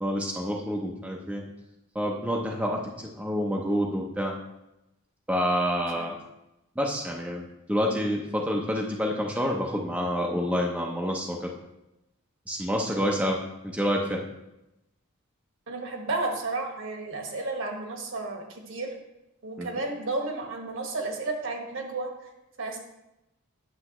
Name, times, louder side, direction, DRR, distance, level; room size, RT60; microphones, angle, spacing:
voice 1, 0.0-1.4 1.9-4.3 5.3-6.2 6.8-11.5 12.5-13.4 13.6-14.2 19.6-19.7, equal, 5° right, -1 dB, 0.6 m, -28 dB
voice 2, 15.7-19.0 19.4-22.1 22.6-22.8, right 3 dB, 65° right, 2 dB, 1.5 m, -32 dB
9.7 x 6.8 x 3.0 m, 0.92 s
head